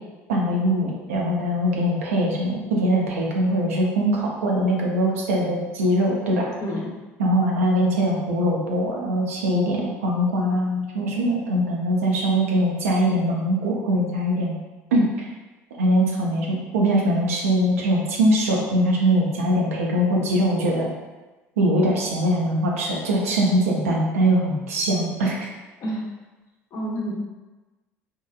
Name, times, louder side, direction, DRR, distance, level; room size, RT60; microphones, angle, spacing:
voice 1, 0.3-6.5 7.2-14.6 14.9-15.3 15.8-20.9 21.6-25.5, equal, 80° right, -2 dB, 0.5 m, -22 dB
voice 2, 6.6-7.0 25.8-26.1 26.7-27.1, equal, 50° left, -2 dB, 0.7 m, -28 dB
2.9 x 2.3 x 2.2 m, 1.2 s
hypercardioid pair, 60°, 7 cm